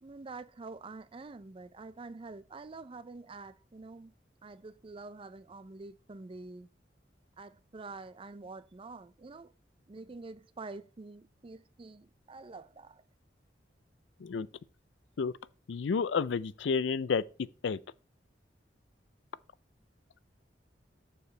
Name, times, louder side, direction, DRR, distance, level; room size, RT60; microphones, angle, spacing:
voice 1, 0.0-4.1 4.4-6.7 7.4-9.5 9.9-13.0, right 3 dB, 30° right, 0.4 m, -47 dB
voice 2, 15.7-17.2 17.6-17.8, left 5 dB, 80° left, 0.4 m, -30 dB
13.5 x 4.6 x 3.2 m
head